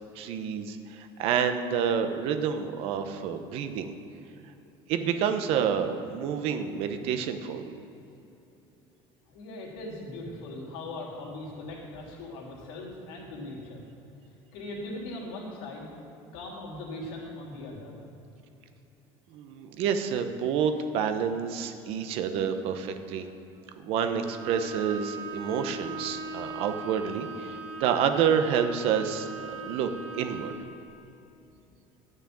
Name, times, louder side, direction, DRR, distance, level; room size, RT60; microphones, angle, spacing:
voice 1, 0.1-3.9 4.9-7.8 19.3-23.3 23.8-29.3 29.6-29.9 30.1-30.5, right 7 dB, 55° right, 8 dB, 1.0 m, -28 dB
voice 2, 9.3-13.8 14.5-15.9 16.3-17.9 29.5-29.7 31.5-31.6, left 2 dB, 90° left, -2 dB, 3.2 m, -40 dB
Bowed string instrument, 24.2-30.7, right 2 dB, 15° right, 2.3 m, -39 dB
11.5 x 6.7 x 8.7 m, 2.9 s
cardioid pair, 160°, 11 cm